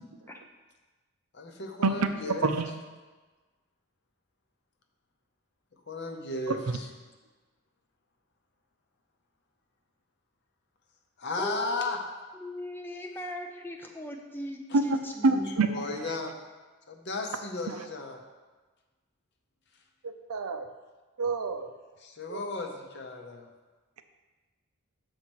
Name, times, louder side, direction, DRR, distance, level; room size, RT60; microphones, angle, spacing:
voice 1, 1.3-2.5 5.9-6.9 11.2-12.0 15.3-16.3 16.9-18.2 22.0-23.5, left 3 dB, 50° left, 3 dB, 0.8 m, -35 dB
voice 2, 6.5-6.8 14.7-14.8 15.2-15.7 16.0-16.2 17.7-17.8 20.0-20.7 21.2-21.7 22.3-22.4, right 3 dB, 80° right, 8 dB, 0.6 m, -27 dB
voice 3, 11.4-11.9 12.3-15.5, equal, 10° left, 1 dB, 0.6 m, -39 dB
6.6 x 4.3 x 6.2 m, 1.3 s
head